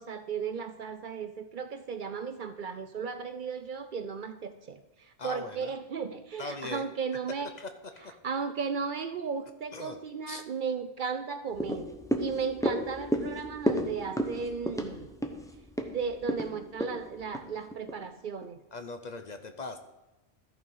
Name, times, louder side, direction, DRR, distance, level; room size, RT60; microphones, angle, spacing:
voice 1, 0.0-7.5 8.2-11.9 12.2-15.1 15.9-18.6, right 5 dB, 55° right, 9 dB, 0.6 m, -35 dB
voice 2, 5.2-5.7 6.4-6.9 7.6-7.7 8.0-8.1 9.7-10.0 10.3-10.5 18.7-19.8, left 3 dB, 45° left, 7 dB, 0.7 m, -40 dB
sound 1, 11.5-18.0 18.4-18.5, equal, 5° left, 0.7 m, -33 dB
14.0 x 4.8 x 5.4 m, 1.1 s
omnidirectional pair, 1.1 m